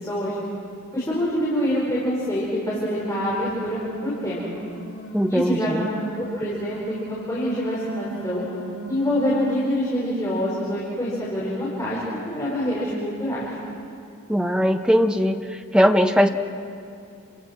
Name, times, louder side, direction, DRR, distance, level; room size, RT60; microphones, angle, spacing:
voice 1, 0.1-0.4 0.9-4.5 5.3-5.7 6.1-8.4 8.9-13.5, equal, 15° left, -8 dB, 5.6 m, -26 dB
sound 1, 3.0-9.6, right 3 dB, 65° left, 6.3 m, -38 dB
voice 2, 5.1-5.9 14.3-15.4 15.7-16.3, equal, 5° right, 5 dB, 1.2 m, -19 dB
29.5 x 26.5 x 6.2 m, 2.6 s
head